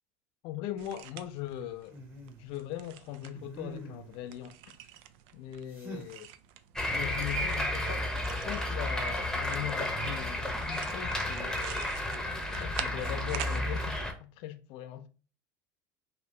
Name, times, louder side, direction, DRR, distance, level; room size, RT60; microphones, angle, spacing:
voice 1, 0.4-2.0 2.4-4.5 5.3-6.3 6.9-8.1 8.4-12.0 12.6-15.1, left 12 dB, 60° left, 0.5 m, -40 dB
sound 1, 0.8-13.6, right 11 dB, 65° right, 0.4 m, -47 dB
sound 2, 1.9-2.4 3.3-4.3 5.7-6.2 8.2-8.6, right 1 dB, 20° right, 1.0 m, -46 dB
sound 3, 6.8-14.1, left 1 dB, 5° left, 0.8 m, -32 dB
2.9 x 2.5 x 3.1 m
hypercardioid pair, 85°, 10 cm